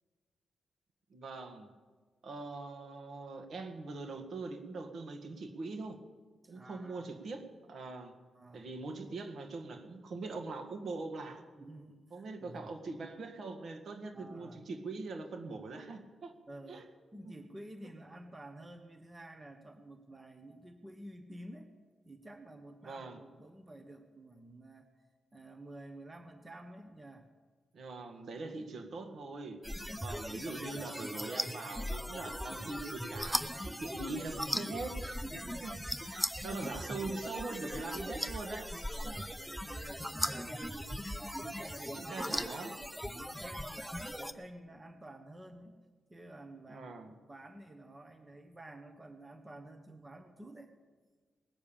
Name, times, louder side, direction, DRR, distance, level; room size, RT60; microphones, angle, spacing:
voice 1, 1.1-1.7 2.2-6.0 6.5-8.1 8.5-11.4 12.1-16.3 16.7-16.9 17.2-17.4 22.8-23.2 27.7-29.6 30.0-35.8 36.0-38.7 39.0-39.2 39.7-39.8 40.5-40.7 41.9-42.8 46.7-47.1, right 3 dB, 65° right, 5 dB, 1.7 m, -42 dB
voice 2, 6.4-7.1 8.3-8.7 11.6-12.7 14.1-14.6 16.5-16.9 17.1-21.7 22.0-24.8 25.3-27.3 29.8-30.2 35.3-35.8 38.8-40.9 41.4-42.6 43.0-45.8 46.1-50.7, right 1 dB, 20° right, 6 dB, 1.1 m, -51 dB
sound 1, 29.6-44.3, equal, ahead, 0.7 m, -39 dB
19.5 x 7.0 x 8.9 m, 1.5 s
cardioid pair, 105°, 0 cm